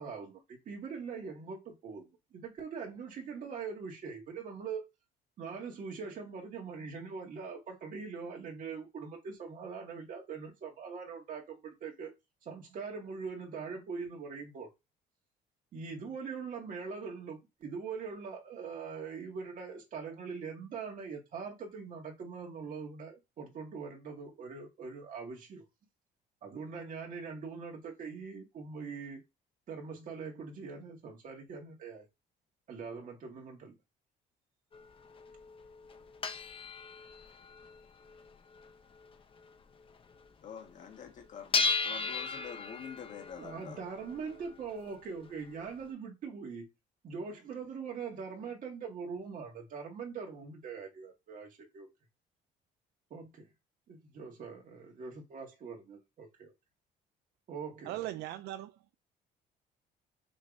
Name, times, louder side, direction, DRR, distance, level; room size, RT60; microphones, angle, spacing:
voice 1, 0.0-4.9 5.4-12.1 12.4-14.7 15.7-25.6 26.4-29.2 29.7-32.1 32.7-33.7 43.3-46.7 47.0-51.9 53.1-53.5 53.9-56.5 57.5-58.0, right 5 dB, 50° right, 2.1 m, -42 dB
sound 1, 34.7-40.2 40.6-40.7 40.9-45.8, left 3 dB, 30° left, 0.7 m, -37 dB
voice 2, 40.4-43.8, left 7 dB, 50° left, 1.5 m, -46 dB
voice 3, 57.9-58.9, right 14 dB, 75° right, 0.4 m, -39 dB
6.2 x 3.2 x 2.6 m
cardioid pair, 110°, 17 cm